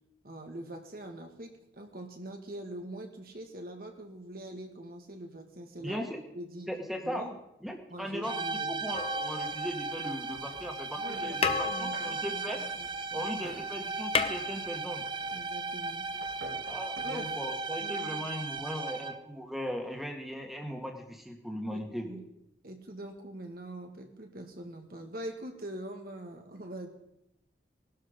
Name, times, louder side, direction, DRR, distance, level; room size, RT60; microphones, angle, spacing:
voice 1, 0.2-6.0 6.3-6.7 7.0-7.4 7.9-8.8 11.0-13.3 15.3-16.1 17.0-17.3 17.8-18.2 21.6-21.8 22.1-22.2 22.6-26.9, right 1 dB, 50° right, 3 dB, 1.9 m, -43 dB
voice 2, 5.8-6.2 6.7-7.3 7.6-12.6 13.1-15.0 16.6-22.2, equal, ahead, 2 dB, 2.0 m, -38 dB
sound 1, 8.2-19.3, right 3 dB, 25° right, 0.5 m, -36 dB
sound 2, 8.9-10.1 11.0-11.1 11.4-13.3 13.5-13.6 13.9-15.2 16.4-16.5, left 5 dB, 30° left, 0.8 m, -33 dB
sound 3, 9.3-17.7, right 1 dB, 90° right, 6.3 m, -52 dB
20.0 x 12.5 x 5.3 m, 0.84 s
head